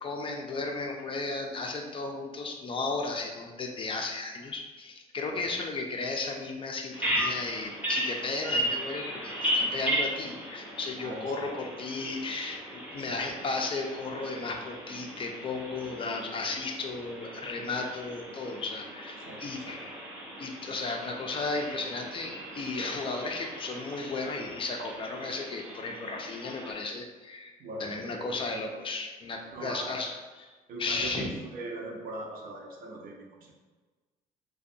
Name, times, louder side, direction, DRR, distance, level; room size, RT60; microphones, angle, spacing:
voice 1, 0.0-19.9 20.4-27.5 27.8-30.5 30.8-31.3, left 3 dB, 30° left, 2 dB, 0.3 m, -35 dB
Bird vocalization bird call bird song, 6.9-26.7, equal, 10° right, 0.7 m, -36 dB
voice 2, 11.0-11.5 12.9-13.2 19.2-19.8 27.6-28.4 29.5-30.1 30.7-33.5, right 2 dB, 60° right, 0 dB, 0.6 m, -41 dB
2.4 x 2.2 x 2.6 m, 1.3 s
cardioid pair, 110°, 17 cm